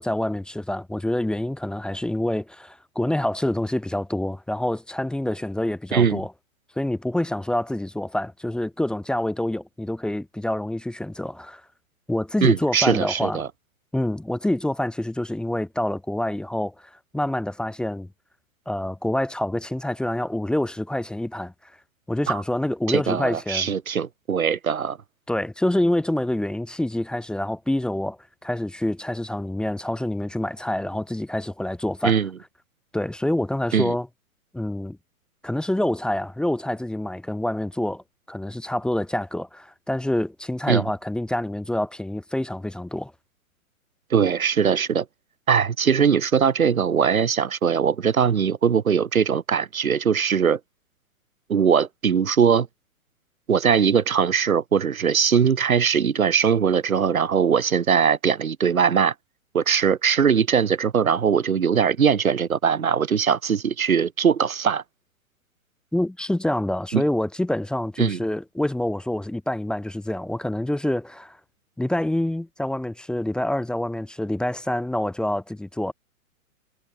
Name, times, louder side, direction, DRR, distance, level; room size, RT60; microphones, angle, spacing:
voice 1, 0.0-6.3 6.8-11.6 12.1-13.5 13.9-18.1 18.7-21.5 22.1-23.7 25.3-32.2 32.9-34.1 34.5-35.0 35.4-43.1 65.9-71.4 71.8-75.9, left 1 dB, ahead, 1.1 m, -26 dB
voice 2, 5.9-6.2 12.4-13.5 22.3-22.4 22.9-25.0 32.0-32.3 33.7-33.9 40.7-40.8 44.1-45.0 45.5-50.6 51.5-52.7 53.5-59.1 59.5-64.8 66.9-67.0 68.0-68.2, right 7 dB, 80° right, 0.9 m, -21 dB
figure-of-eight pair, 115°, 41 cm